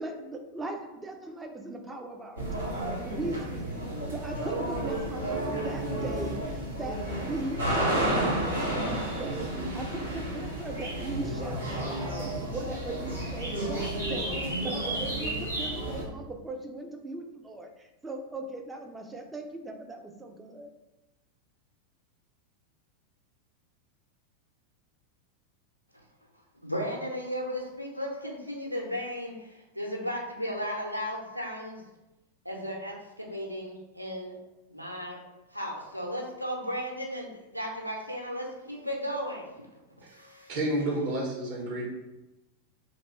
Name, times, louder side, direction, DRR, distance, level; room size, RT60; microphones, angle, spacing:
voice 1, 0.0-2.7 3.0-20.7, right 2 dB, 10° right, 3 dB, 0.5 m, -39 dB
sound 1, 2.4-16.0, right 1 dB, 75° right, 1.0 m, -31 dB
voice 2, 26.6-31.8 32.4-34.4 34.7-35.2 35.5-40.5, equal, 90° left, -1 dB, 0.6 m, -35 dB
voice 3, 40.5-41.8, right 1 dB, 45° right, -3 dB, 1.2 m, -30 dB
2.9 x 2.9 x 4.2 m, 1.0 s
figure-of-eight pair, 90°, 0 cm